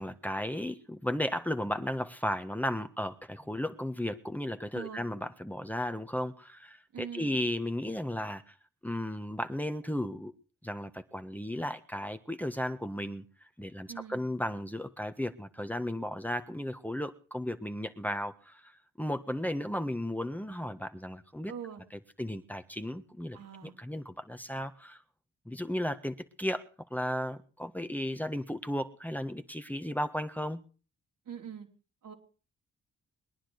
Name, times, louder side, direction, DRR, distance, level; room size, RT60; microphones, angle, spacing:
voice 1, 0.0-8.6 8.8-10.3 10.6-21.5 22.2-25.0 25.4-26.6 26.9-30.6, left 1 dB, 5° left, 8 dB, 1.5 m, -35 dB
voice 2, 4.7-5.0 6.9-7.3 13.9-14.2 21.5-21.8 23.3-23.7 31.3-31.7 32.0-32.1, right 8 dB, 75° right, 2 dB, 4.3 m, -42 dB
22.0 x 10.0 x 6.5 m, 0.39 s
cardioid pair, 65°, 32 cm